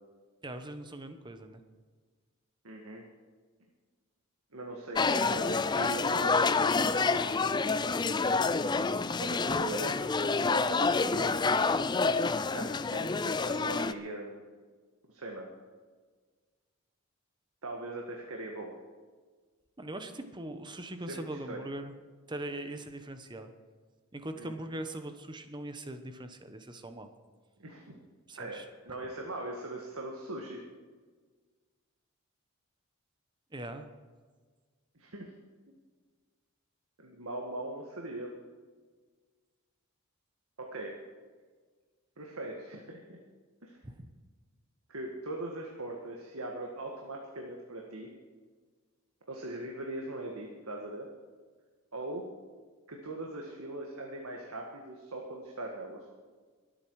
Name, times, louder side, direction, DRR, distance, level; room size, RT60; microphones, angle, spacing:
voice 1, 0.4-1.6 19.8-21.9 22.3-23.5 24.1-27.1 28.3-29.0 33.5-33.9 43.8-44.0, right 1 dB, 20° right, 8 dB, 1.0 m, -41 dB
voice 2, 2.6-3.0 4.5-7.5 9.2-11.3 12.5-14.4 15.1-15.5 17.6-18.7 21.1-21.7 24.3-24.5 27.6-28.0 28.4-28.6 28.8-30.6 35.0-35.3 37.0-38.4 40.6-41.0 42.2-43.2 43.6-43.8 44.9-48.1 49.3-51.1 51.9-52.3 52.9-56.1, right 2 dB, 75° right, 0 dB, 1.8 m, -40 dB
sound 1, 5.0-13.9, left 4 dB, 20° left, 0.4 m, -28 dB
22.5 x 8.9 x 4.8 m, 1.5 s
head